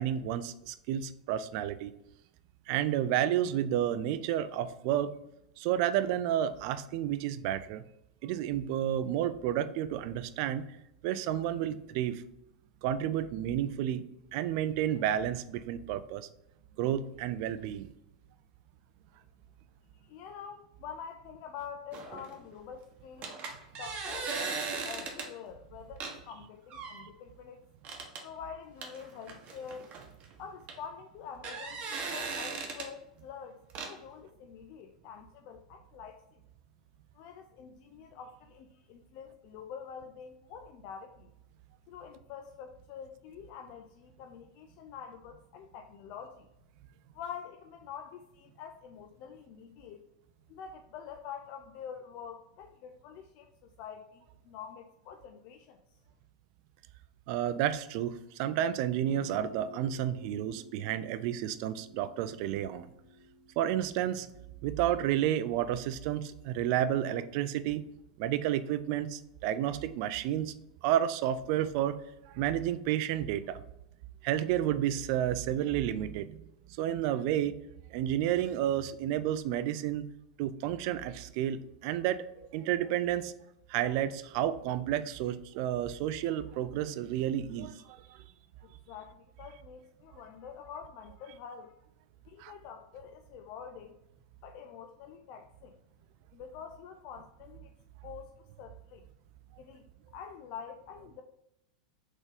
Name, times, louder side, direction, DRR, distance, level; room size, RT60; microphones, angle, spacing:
voice 1, 0.0-1.9 2.7-5.1 5.6-7.8 8.2-10.7 11.0-12.2 12.8-14.1 14.3-16.3 16.8-17.9 57.3-62.9 63.6-64.3 64.6-67.9 68.2-70.5 70.8-72.0 72.3-73.6 74.2-76.4 76.8-77.6 77.9-80.1 80.4-82.2 82.5-83.3 83.7-88.2 92.4-92.5, right 11 dB, 55° right, 12 dB, 0.4 m, -31 dB
voice 2, 20.0-23.3 23.7-27.6 28.2-29.9 30.4-36.4 37.1-41.3 41.9-46.5 47.1-50.0 50.5-55.8 88.9-91.8 92.3-93.9 94.4-95.8 96.3-97.7 98.0-99.1 99.6-99.8 100.1-101.2, left 7 dB, 55° left, 5 dB, 0.4 m, -46 dB
sound 1, 21.9-22.4 23.2-25.3 26.0-26.2 26.7-27.1 27.8-28.2 28.8-30.3 30.7-30.8 31.3-32.9 33.7-33.9, right 4 dB, 40° right, 1.0 m, -38 dB
Guitar, 59.0-66.7, equal, 75° right, 0.8 m, -54 dB
4.0 x 3.6 x 3.4 m, 0.85 s
hypercardioid pair, 100°, 3 cm